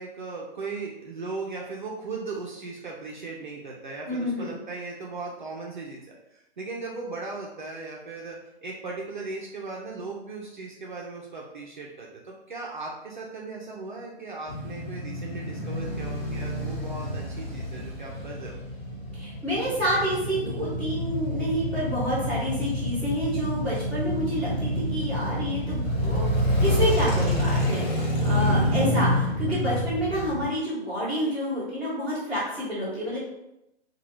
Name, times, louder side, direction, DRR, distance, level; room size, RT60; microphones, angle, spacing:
voice 1, 0.0-6.0 6.3-18.6 28.3-28.7, right 3 dB, 45° right, -2 dB, 0.5 m, -37 dB
voice 2, 4.0-4.6 19.1-33.2, equal, 5° left, -14 dB, 0.8 m, -29 dB
Male speech man speaking / Motorcycle / Idling, 14.5-30.5, equal, 40° left, 1.2 m, -28 dB
2.7 x 2.3 x 3.1 m, 0.88 s
figure-of-eight pair, 135°, 33 cm